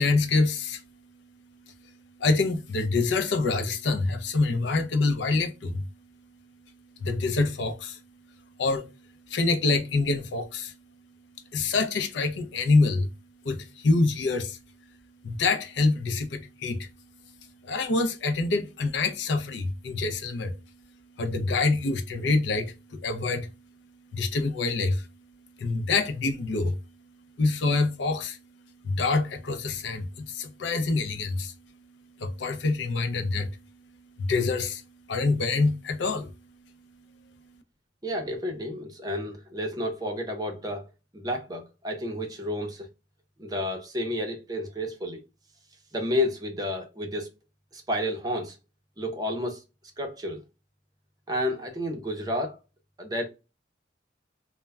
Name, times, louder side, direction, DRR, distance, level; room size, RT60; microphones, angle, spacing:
voice 1, 0.0-13.1 13.4-15.0 15.2-37.6, left 3 dB, 65° left, 0.4 m, -27 dB
voice 2, 38.0-40.9 41.1-42.9 43.4-45.2 45.9-47.3 47.7-48.6 49.0-49.6 50.0-50.4 51.3-52.6 53.0-53.2, left 1 dB, 20° right, 0.6 m, -31 dB
2.2 x 2.1 x 3.3 m
head